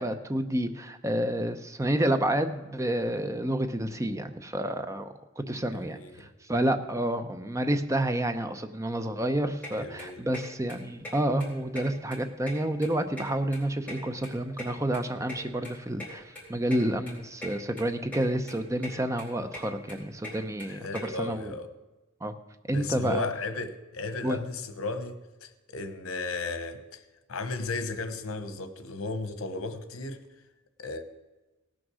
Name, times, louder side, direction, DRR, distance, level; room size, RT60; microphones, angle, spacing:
voice 1, 0.0-21.5 22.2-22.3 22.7-23.2 24.2-24.4, right 1 dB, 15° right, 0.6 m, -29 dB
voice 2, 5.8-6.3 9.8-10.3 20.7-21.7 22.7-27.0 27.3-30.2 30.8-31.0, left 3 dB, 90° left, 1.1 m, -35 dB
sound 1, 9.6-9.7 10.0-10.4 10.7-10.8 11.0-11.1 11.4-12.2 12.4-13.6 13.9-15.4 15.6-15.7 16.0-16.1 16.4-16.5 16.7-16.8 17.1-17.5 17.8-18.2 18.5-18.9 19.2-21.0, left 1 dB, 5° left, 4.0 m, -40 dB
17.5 x 6.2 x 6.2 m
head